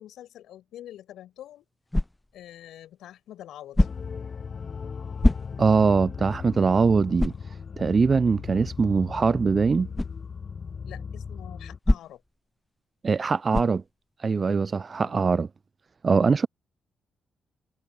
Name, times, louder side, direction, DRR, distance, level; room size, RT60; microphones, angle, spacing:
voice 1, 0.0-1.7 2.3-3.9 8.5-8.7 9.2-9.5 10.8-12.2 15.0-15.3, left 12 dB, 70° left, 5.4 m, -46 dB
sound 1, 1.9-2.4 3.7-4.2 5.2-5.8 6.3-6.4 7.2-7.5 9.9-10.2 11.8-12.4 13.5-13.9, left 1 dB, 15° left, 0.6 m, -24 dB
sound 2, 3.8-11.8, left 6 dB, 50° left, 0.8 m, -37 dB
voice 2, 5.6-7.3 7.8-9.9 13.0-13.8 14.2-15.5 16.0-16.5, right 5 dB, 45° right, 0.4 m, -22 dB
hypercardioid pair, 40°, 0 cm